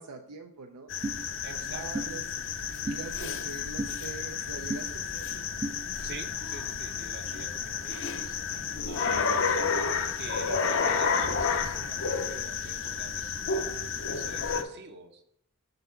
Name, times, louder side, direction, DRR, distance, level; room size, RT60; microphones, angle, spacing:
voice 1, 0.0-2.2 2.8-5.3, right 4 dB, 80° right, 3 dB, 0.5 m, -44 dB
sound 1, 0.9-14.6, left 6 dB, 60° left, 0.6 m, -31 dB
sound 2, 1.0-1.2 1.9-2.1 2.9-3.0 3.8-3.9 4.7-4.8 5.6-5.8, right 2 dB, 20° right, 0.3 m, -32 dB
voice 2, 1.4-2.1 6.0-8.4 8.9-9.3 10.2-13.2 13.5-15.2, right 4 dB, 50° right, 6 dB, 0.8 m, -46 dB
6.6 x 4.0 x 4.3 m, 0.75 s
head